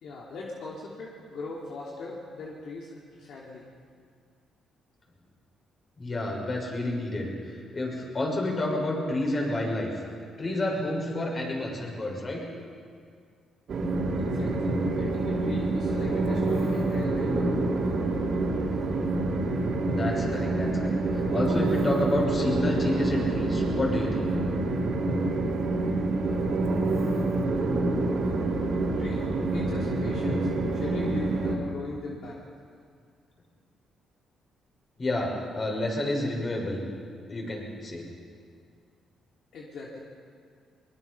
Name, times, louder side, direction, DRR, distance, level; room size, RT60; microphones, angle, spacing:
voice 1, 0.0-3.7 14.2-17.6 29.0-29.2 29.5-32.4 39.5-40.0, left 3 dB, 70° left, -3 dB, 2.9 m, -39 dB
voice 2, 6.0-7.3 7.7-9.9 10.4-12.4 19.9-21.0 21.3-24.3 35.0-36.8 37.3-38.0, left 1 dB, 35° left, -1 dB, 6.3 m, -29 dB
Train, 13.7-31.5, right 2 dB, 60° right, 3.7 m, -27 dB
22.5 x 21.5 x 5.7 m, 2.1 s
cardioid pair, 90°, 0 cm